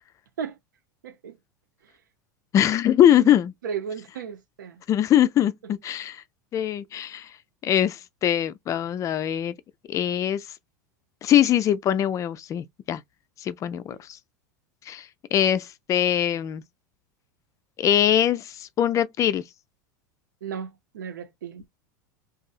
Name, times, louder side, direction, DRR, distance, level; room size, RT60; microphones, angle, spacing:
voice 1, 1.0-1.3 3.1-3.3 3.6-4.8 13.7-14.0 20.4-21.6, right 7 dB, 90° right, 0.6 m, -35 dB
voice 2, 2.5-3.5 4.9-6.2 6.5-7.3 7.6-9.5 9.9-10.5 11.2-13.0 13.4-14.2 14.9-16.6 17.8-19.4, left 10 dB, 35° left, 0.3 m, -22 dB
2.6 x 2.3 x 2.4 m
hypercardioid pair, 100°, 10 cm